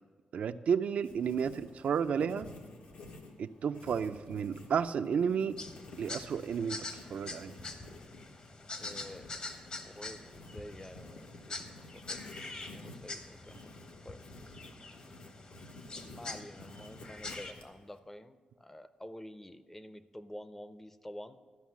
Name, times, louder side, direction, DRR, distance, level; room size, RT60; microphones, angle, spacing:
voice 1, 0.3-2.5 3.4-5.6 6.0-7.5, right 7 dB, 70° right, 11 dB, 0.4 m, -32 dB
Writing, 0.7-3.2 3.7-5.0 5.5-5.6 6.1-16.7 17.0-17.8, left 2 dB, 65° left, 2.7 m, -60 dB
Writing 2, 0.8-18.0, left 2 dB, 80° left, 1.5 m, -52 dB
sound 1, 5.6-17.5, left 3 dB, 45° left, 1.0 m, -45 dB
voice 2, 8.8-9.4 9.8-13.7 14.0-14.3 15.9-21.4, left 1 dB, 15° left, 12 dB, 0.5 m, -49 dB
13.0 x 5.7 x 7.2 m, 1.5 s
cardioid pair, 105°, 2 cm